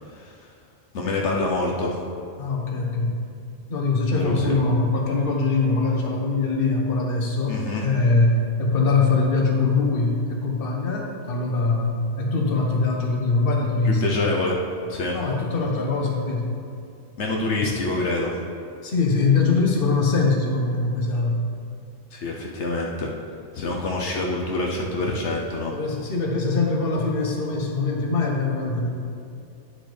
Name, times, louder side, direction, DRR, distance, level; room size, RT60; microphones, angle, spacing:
voice 1, 0.9-2.0 4.2-4.5 7.5-7.8 13.8-14.6 14.9-15.1 17.2-18.3 22.1-23.1 23.5-25.7, left 2 dB, 80° left, -2 dB, 1.1 m, -26 dB
voice 2, 2.4-3.2 3.7-14.2 15.1-16.5 18.8-21.5 25.7-29.0, left 3 dB, 55° left, 0 dB, 1.2 m, -22 dB
9.6 x 6.5 x 3.4 m, 2.5 s
omnidirectional pair, 1.2 m